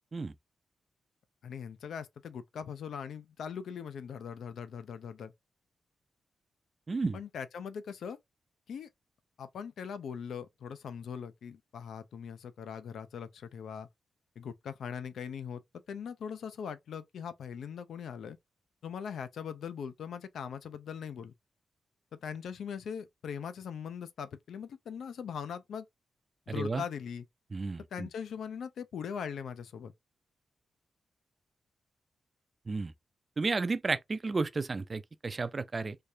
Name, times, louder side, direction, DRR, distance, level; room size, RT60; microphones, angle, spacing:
voice 1, 1.4-5.3 7.1-8.2 8.7-8.9 9.4-13.9 14.4-15.6 15.9-18.4 18.8-21.3 22.2-25.9 26.5-27.2 27.9-29.9, left 7 dB, 80° left, 0.5 m, -40 dB
voice 2, 6.9-7.2 26.5-26.8 27.5-28.1 32.7-32.9 33.4-36.0, right 3 dB, 25° right, 0.3 m, -32 dB
3.3 x 3.3 x 2.5 m
wide cardioid pair, 175°, 0 cm